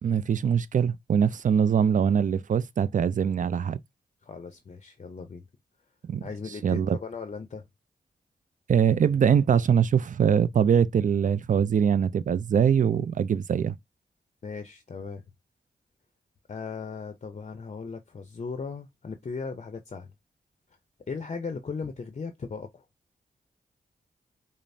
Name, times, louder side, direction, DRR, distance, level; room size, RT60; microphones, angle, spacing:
voice 1, 0.0-3.8 6.1-6.3 6.6-7.0 8.7-13.7, right 7 dB, 50° right, 0.4 m, -23 dB
voice 2, 4.2-5.4 6.2-7.7 12.8-13.1 14.4-15.2 16.5-20.1 21.1-22.8, left 5 dB, 40° left, 0.5 m, -37 dB
5.1 x 2.0 x 2.6 m
cardioid pair, 50°, 17 cm